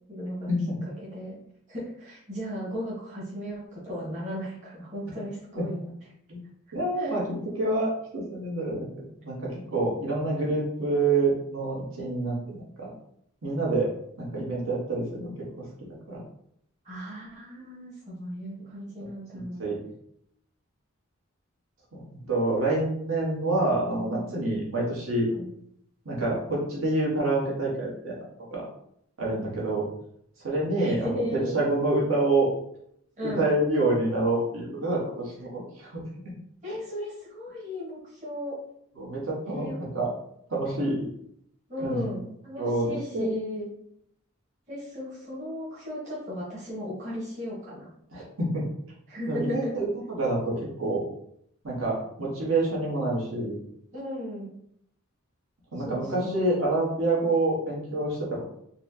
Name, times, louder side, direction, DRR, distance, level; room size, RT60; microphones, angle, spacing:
voice 1, 0.1-0.5 1.1-1.4 1.7-5.9 7.0-7.1 16.8-19.6 23.7-24.5 25.3-25.5 30.8-31.5 33.2-33.5 36.6-38.6 39.5-39.8 41.7-43.7 44.7-47.9 49.1-49.7 53.9-54.5 55.8-56.4, left 1 dB, 35° right, -8 dB, 1.2 m, -36 dB
voice 2, 6.7-8.9 9.2-12.9 13.4-13.9 14.2-15.3 15.6-15.7 16.1-16.2 19.3-19.9 21.9-25.3 26.0-28.2 28.5-28.6 29.2-29.8 30.4-32.5 33.2-36.0 39.0-40.1 40.5-41.0 41.8-42.1 42.6-43.3 48.1-48.6 49.3-51.0 51.6-53.6 55.7-58.4, right 2 dB, 80° right, -4 dB, 1.2 m, -27 dB
4.1 x 2.2 x 2.7 m, 0.71 s
head